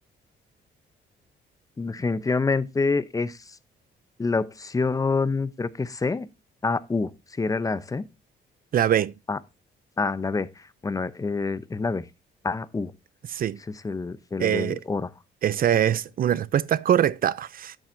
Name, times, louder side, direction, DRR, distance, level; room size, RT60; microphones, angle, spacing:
voice 1, 1.8-3.6 4.2-6.3 6.6-8.0 9.3-9.4 10.0-12.1 12.4-12.9 13.7-15.1, left 4 dB, 15° left, 0.6 m, -27 dB
voice 2, 8.7-9.1 13.3-13.6 14.4-14.8 15.4-17.8, right 10 dB, 45° right, 0.4 m, -23 dB
10.0 x 7.3 x 2.5 m
cardioid pair, 90°, 20 cm